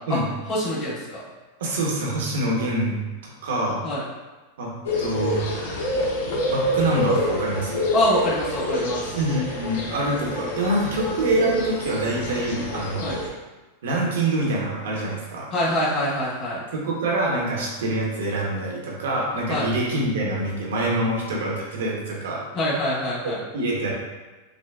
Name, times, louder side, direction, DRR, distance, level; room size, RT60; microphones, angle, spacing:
voice 1, 0.5-1.2 3.8-4.0 7.9-9.1 13.0-13.2 15.5-16.6 19.5-19.7 22.5-23.4, left 1 dB, 35° left, -8 dB, 1.4 m, -25 dB
voice 2, 1.6-3.0 3.2-3.8 4.6-5.4 6.5-7.8 9.1-13.2 13.8-15.5 16.7-22.4 23.5-23.9, right 1 dB, 80° right, -2 dB, 1.1 m, -25 dB
sound 1, 4.8-13.3, left 1 dB, 75° left, 0.8 m, -27 dB
5.9 x 2.2 x 2.4 m, 1.2 s
hypercardioid pair, 120°, 0 cm